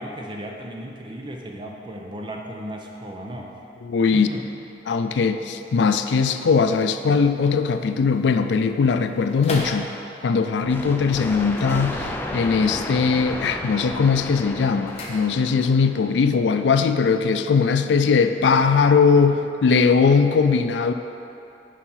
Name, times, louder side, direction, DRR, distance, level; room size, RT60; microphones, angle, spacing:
voice 1, 0.0-3.5 4.1-4.5, equal, 25° right, 1 dB, 0.7 m, -35 dB
voice 2, 3.8-4.3 4.9-9.9 10.2-20.9, left 5 dB, 85° left, 8 dB, 0.4 m, -20 dB
sound 1, 5.4-10.4 11.4-12.6 12.9-13.4 13.7-15.8 16.1-16.2, left 1 dB, 35° left, 0.8 m, -39 dB
sound 2, 10.6-16.2, left 1 dB, 10° left, 0.4 m, -33 dB
7.1 x 4.9 x 5.6 m, 2.8 s
head